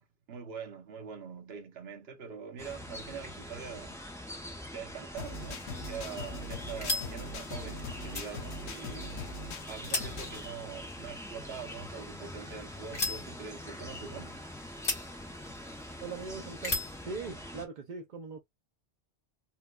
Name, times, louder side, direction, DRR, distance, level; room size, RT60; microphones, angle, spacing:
voice 1, 0.0-4.0 4.7-9.1 9.7-14.4, right 6 dB, 70° right, 1.0 m, -44 dB
sound 1, 2.6-17.7, left 1 dB, 5° left, 0.6 m, -44 dB
sound 2, 5.2-10.5, left 2 dB, 85° left, 1.0 m, -41 dB
sound 3, 5.7-17.0, left 3 dB, 60° left, 1.7 m, -40 dB
voice 2, 16.0-16.8 17.0-18.4, right 4 dB, 55° right, 0.6 m, -40 dB
4.1 x 2.2 x 2.2 m
omnidirectional pair, 1.1 m